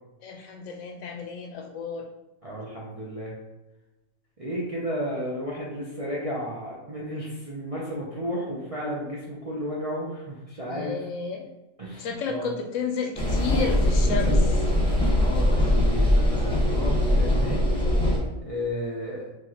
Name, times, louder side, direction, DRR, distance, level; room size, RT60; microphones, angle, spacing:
voice 1, 0.2-2.1 10.6-11.5 12.0-14.6, left 5 dB, 70° left, 3 dB, 0.9 m, -32 dB
voice 2, 2.4-3.4 4.4-11.0 11.8-12.5 15.1-17.7 18.5-19.3, equal, 40° right, -6 dB, 0.5 m, -33 dB
sound 1, 13.1-18.2, left 1 dB, 5° left, 1.0 m, -21 dB
4.7 x 3.1 x 2.8 m, 1.0 s
omnidirectional pair, 1.4 m